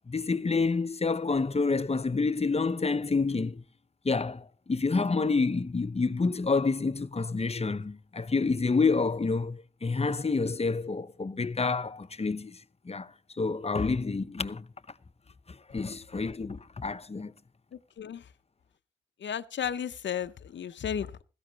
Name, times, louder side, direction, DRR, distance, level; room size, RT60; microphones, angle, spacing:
voice 1, 0.1-3.6 4.0-14.7 15.5-17.3, left 4 dB, 35° left, 0.8 m, -28 dB
voice 2, 17.7-18.3 19.2-21.2, left 8 dB, 75° left, 0.7 m, -34 dB
16.5 x 14.0 x 2.9 m
cardioid pair, 45°, 19 cm